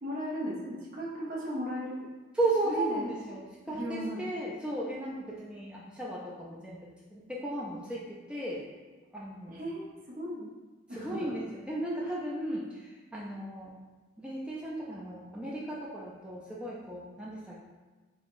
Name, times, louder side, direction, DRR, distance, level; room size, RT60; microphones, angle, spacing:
voice 1, 0.0-2.1 2.6-3.1 3.7-4.3 9.5-10.4 10.9-11.3, equal, 45° right, -5 dB, 0.8 m, -36 dB
voice 2, 2.3-8.6 9.1-9.6 10.9-13.8 14.2-17.6, right 1 dB, 5° right, -5 dB, 0.3 m, -35 dB
3.5 x 3.5 x 2.5 m, 1.3 s
head